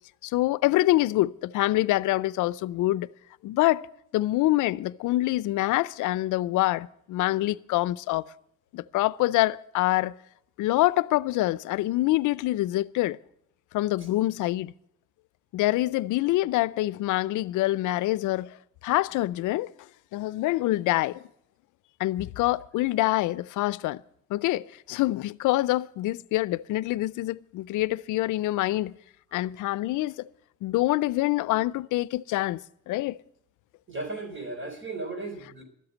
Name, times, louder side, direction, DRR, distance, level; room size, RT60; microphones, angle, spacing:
voice 1, 0.2-3.1 3.4-3.9 4.1-8.3 8.7-10.1 10.6-13.2 13.7-14.7 15.5-18.6 18.8-19.7 20.1-21.2 22.0-24.0 24.3-28.9 29.3-30.3 30.6-33.2, left 17 dB, 85° left, 0.5 m, -25 dB
voice 2, 33.9-35.6, right 2 dB, 40° right, 4.0 m, -35 dB
13.0 x 7.9 x 9.6 m
cardioid pair, 90°, 30 cm